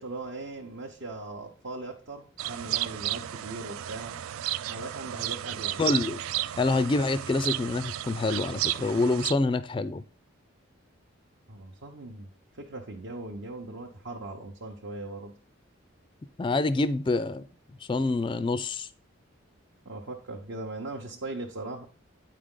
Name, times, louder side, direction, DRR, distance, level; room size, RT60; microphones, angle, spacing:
voice 1, 0.0-4.2 4.7-5.9 11.5-15.3 19.8-21.9, right 2 dB, 60° right, 0.8 m, -39 dB
sound 1, 2.4-9.3, right 13 dB, 85° right, 0.3 m, -33 dB
voice 2, 5.8-6.2 6.6-10.0 16.4-17.4 17.9-18.9, left 3 dB, 25° left, 0.3 m, -26 dB
8.7 x 5.1 x 3.7 m
head